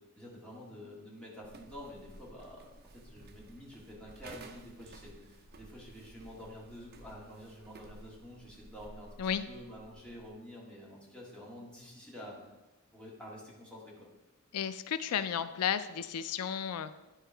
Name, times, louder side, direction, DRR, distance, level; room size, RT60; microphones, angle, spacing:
voice 1, 0.2-12.5 12.9-14.1, equal, 5° left, -5 dB, 1.8 m, -49 dB
sound 1, 1.4-10.4, right 2 dB, 45° right, 0.7 m, -54 dB
voice 2, 14.5-17.0, left 8 dB, 90° left, 12 dB, 0.4 m, -33 dB
11.5 x 4.6 x 4.5 m, 1.1 s
head